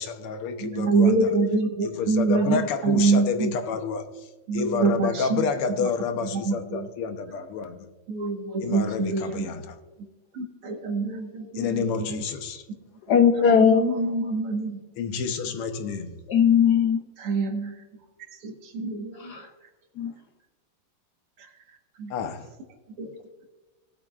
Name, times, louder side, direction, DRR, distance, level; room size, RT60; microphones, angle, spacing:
voice 1, 0.0-1.3 1.8-4.1 4.5-7.9 8.6-9.8 11.6-12.6 15.0-16.1 22.1-22.5, left 5 dB, 90° left, 8 dB, 1.9 m, -29 dB
voice 2, 0.6-3.5 4.5-5.5 5.8-5.9 6.3-6.9 8.1-9.5 10.3-12.2 13.4-14.8 17.2-17.7 18.3-19.3 21.4-21.5 22.0-22.1 23.0-23.2, right 3 dB, 90° right, 3 dB, 2.5 m, -25 dB
voice 3, 13.1-14.0 16.3-17.0 19.1-19.5 20.0-20.1, left 7 dB, 75° left, 6 dB, 0.9 m, -19 dB
19.0 x 8.1 x 2.4 m, 1.3 s
omnidirectional pair, 2.4 m